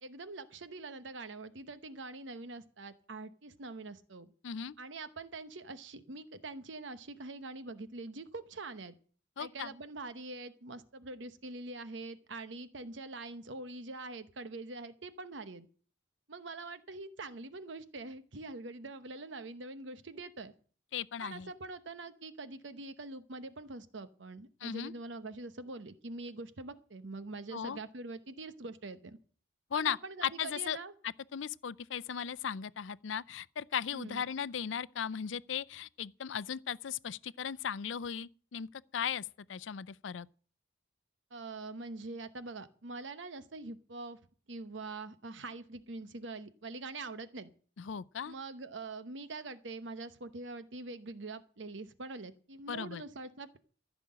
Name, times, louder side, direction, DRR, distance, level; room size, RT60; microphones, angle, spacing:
voice 1, 0.0-4.3 4.8-8.9 9.4-15.7 16.3-20.5 21.2-29.2 29.7-30.9 33.9-34.2 41.3-44.2 44.5-47.5 48.2-53.6, right 3 dB, 75° right, 1.0 m, -44 dB
voice 2, 4.4-4.7 9.4-9.7 20.9-21.5 24.6-24.9 27.5-27.8 29.7-30.0 30.2-30.8 31.0-40.3 47.8-48.3 52.7-53.0, left 8 dB, 80° left, 0.5 m, -37 dB
15.0 x 6.0 x 8.6 m
head